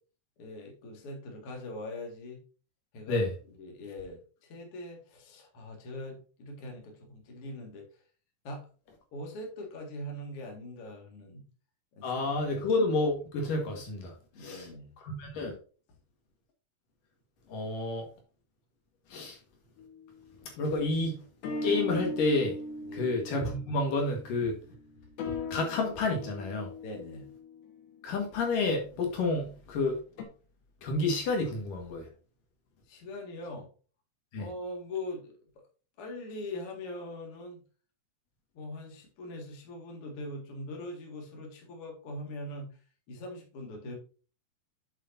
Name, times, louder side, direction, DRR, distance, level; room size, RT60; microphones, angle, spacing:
voice 1, 0.4-2.4 2.9-3.2 3.6-7.9 8.4-8.7 9.1-11.5 12.0-12.7 14.3-14.9 22.9-23.1 26.8-27.3 32.9-33.7 34.4-35.4 36.0-37.6 38.5-42.7 43.1-44.0, left 1 dB, 45° left, 1 dB, 2.7 m, -42 dB
voice 2, 12.0-14.1 14.4-14.7 15.0-15.5 17.5-18.1 19.1-19.4 20.6-21.1 21.6-22.5 22.9-24.6 25.3-26.7 28.0-30.0 30.8-32.1 34.3-34.5, left 2 dB, 65° left, 1 dB, 3.2 m, -29 dB
sound 1, 19.8-20.2 21.4-28.5 30.2-30.3, left 2 dB, 85° left, 3.5 m, -39 dB
8.5 x 7.7 x 2.7 m, 0.37 s
omnidirectional pair, 4.2 m